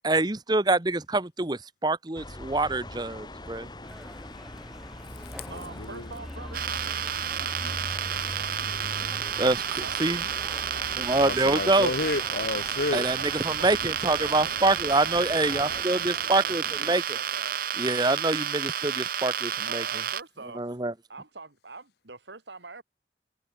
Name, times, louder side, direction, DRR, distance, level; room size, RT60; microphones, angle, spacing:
voice 1, 0.0-3.7 9.4-10.2 11.0-11.9 12.9-13.2 13.4-17.0 17.8-19.8 20.6-20.9, right 2 dB, 25° right, 1.1 m, -25 dB
sound 1, 2.1-15.8, left 1 dB, 25° left, 2.2 m, -42 dB
sound 2, 3.8-16.9, equal, ahead, 3.0 m, -49 dB
voice 2, 5.5-9.2 9.8-11.1 13.2-17.6 19.7-20.8 21.1-22.8, right 3 dB, 85° right, 3.0 m, -45 dB
sound 3, 6.5-20.2, right 9 dB, 55° right, 0.8 m, -31 dB
voice 3, 11.1-13.1, left 2 dB, 65° left, 1.2 m, -30 dB
head